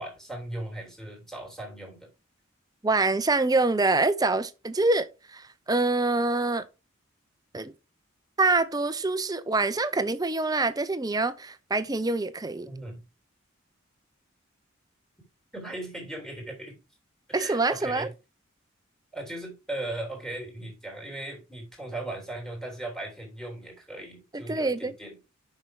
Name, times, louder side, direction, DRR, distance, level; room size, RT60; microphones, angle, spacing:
voice 1, 0.0-2.1 12.6-13.0 15.5-16.7 17.3-18.1 19.1-25.2, right 1 dB, ahead, 3.2 m, -38 dB
voice 2, 2.8-5.1 5.3-5.4 5.7-6.7 7.5-7.7 8.4-12.7 17.3-18.1 24.3-24.9, right 3 dB, 20° right, 0.6 m, -25 dB
7.2 x 5.7 x 4.8 m
head